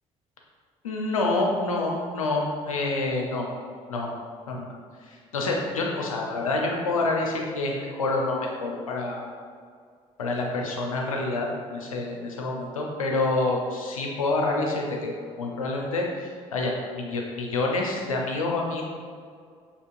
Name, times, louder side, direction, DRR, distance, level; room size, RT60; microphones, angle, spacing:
voice 1, 0.8-3.5 3.9-4.1 4.5-4.8 5.0-9.3 10.2-15.1 15.4-18.8, left 2 dB, 80° left, 0 dB, 0.5 m, -27 dB
6.5 x 2.8 x 2.5 m, 2.1 s
figure-of-eight pair, 45°, 17 cm